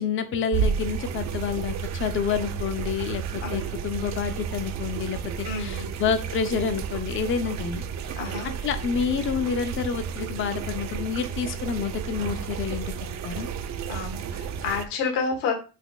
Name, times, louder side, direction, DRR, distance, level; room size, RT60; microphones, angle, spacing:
voice 1, 0.0-7.8 8.6-12.9 13.2-13.5, left 6 dB, 30° left, 9 dB, 0.5 m, -28 dB
sound 1, 0.5-14.9, right 7 dB, 40° right, 0.4 m, -32 dB
voice 2, 3.4-3.8 5.4-5.9 8.1-8.5 13.9-15.5, left 5 dB, 65° left, 2 dB, 1.3 m, -30 dB
4.1 x 2.6 x 2.3 m, 0.33 s
supercardioid pair, 90°, 45 cm